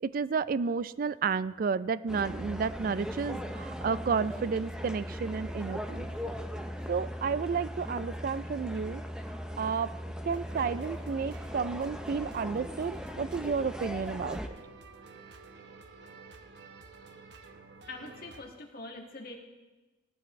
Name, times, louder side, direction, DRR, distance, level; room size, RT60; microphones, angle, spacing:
voice 1, 0.0-6.1 6.9-9.0 9.6-9.9 10.2-14.6, right 5 dB, 50° right, 17 dB, 0.3 m, -31 dB
sound 1, 2.1-14.5, equal, 5° right, 0.6 m, -39 dB
sound 2, 10.3-18.4, right 3 dB, 65° right, 1.0 m, -51 dB
voice 2, 17.9-19.3, left 2 dB, 50° left, 0 dB, 1.8 m, -43 dB
17.5 x 12.0 x 3.1 m, 1.2 s
head